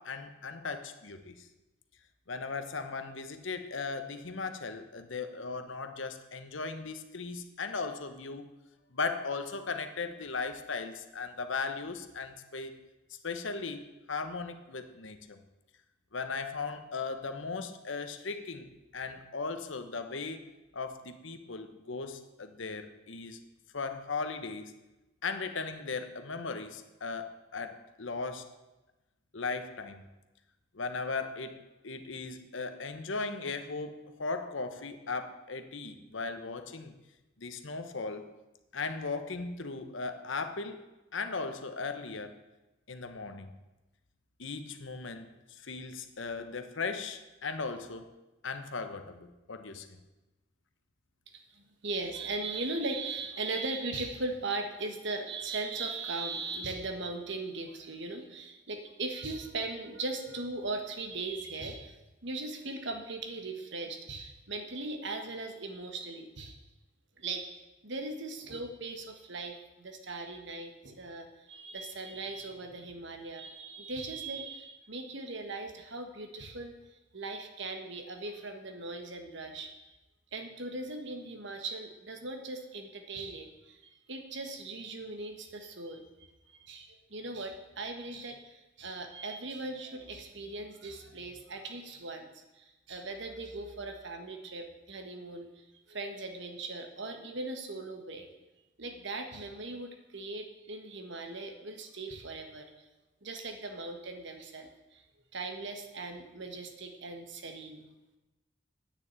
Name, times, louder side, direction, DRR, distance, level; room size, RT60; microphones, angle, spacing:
voice 1, 0.0-1.5 2.3-8.5 8.9-12.7 13.2-15.4 16.1-20.5 20.7-23.4 23.7-24.7 25.2-28.5 29.3-30.0 30.7-36.9 37.4-38.3 38.7-40.8 41.1-42.3 42.9-43.5 44.4-48.1 48.4-49.9, left 4 dB, 70° left, 8 dB, 1.1 m, -37 dB
voice 2, 51.5-61.9 62.2-66.6 67.2-76.8 77.1-79.7 80.3-95.5 95.9-98.3 98.8-102.7 103.2-105.0 105.3-107.9, right 3 dB, 65° right, 5 dB, 1.6 m, -39 dB
9.1 x 7.0 x 8.9 m, 1.0 s
head